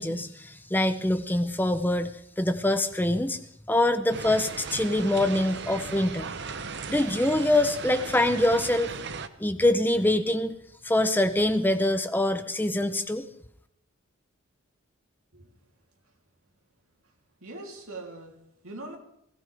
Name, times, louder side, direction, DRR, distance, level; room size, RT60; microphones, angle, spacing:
voice 1, 0.0-3.4 3.7-6.3 6.9-8.9 9.4-10.6 10.8-13.2, left 1 dB, 10° left, 0.6 m, -24 dB
sound 1, 4.1-9.3, right 5 dB, 55° right, 0.8 m, -37 dB
voice 2, 17.4-19.0, right 2 dB, 80° right, 3.1 m, -42 dB
19.0 x 16.5 x 3.5 m
head